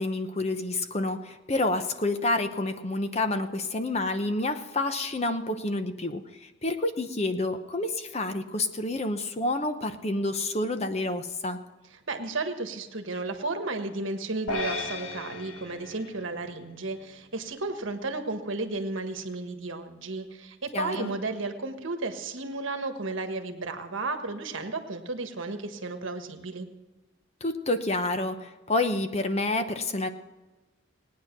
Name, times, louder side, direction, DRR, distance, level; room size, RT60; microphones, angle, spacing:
voice 1, 0.0-11.6 20.7-21.1 27.4-30.1, left 2 dB, 30° left, 8 dB, 0.8 m, -29 dB
voice 2, 12.1-26.7, right 3 dB, 70° right, 6 dB, 1.4 m, -33 dB
sound 1, 14.5-17.0, left 2 dB, 70° left, 1.7 m, -35 dB
19.0 x 9.5 x 6.0 m, 1.2 s
head